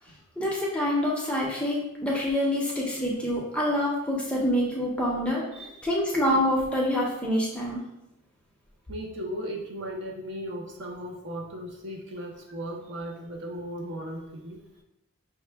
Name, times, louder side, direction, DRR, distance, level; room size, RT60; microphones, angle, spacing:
voice 1, 0.4-5.4 5.8-7.8, left 1 dB, 5° left, -4 dB, 0.6 m, -26 dB
voice 2, 5.5-5.9 8.9-14.6, equal, 50° right, -1 dB, 0.7 m, -36 dB
5.6 x 2.2 x 3.3 m, 0.87 s
head